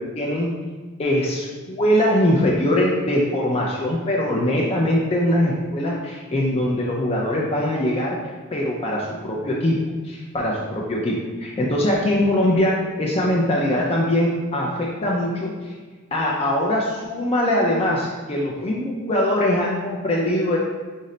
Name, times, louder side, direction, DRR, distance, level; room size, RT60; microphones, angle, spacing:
voice 1, 0.2-0.5 1.0-8.2 8.5-9.8 10.0-15.7 16.1-20.6, left 1 dB, 25° left, -3 dB, 0.4 m, -22 dB
5.3 x 2.1 x 3.8 m, 1.4 s
head